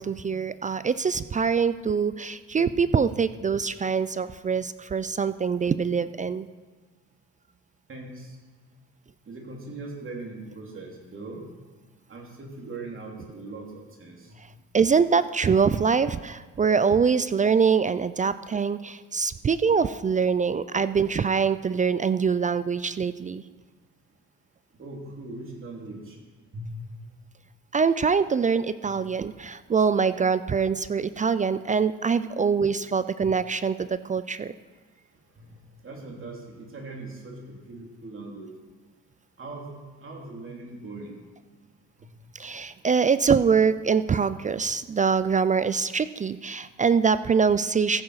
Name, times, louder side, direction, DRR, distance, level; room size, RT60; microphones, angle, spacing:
voice 1, 0.0-6.5 14.7-23.4 27.7-34.5 42.3-48.0, right 6 dB, 25° right, 14 dB, 0.3 m, -24 dB
voice 2, 7.9-8.4 9.3-11.4 12.1-14.4 24.8-26.2 26.5-26.7 35.4-38.5 39.4-39.7 40.0-41.2 42.0-42.1, right 2 dB, 45° right, -1 dB, 3.1 m, -40 dB
15.0 x 7.2 x 4.8 m, 1.3 s
cardioid pair, 90°, 30 cm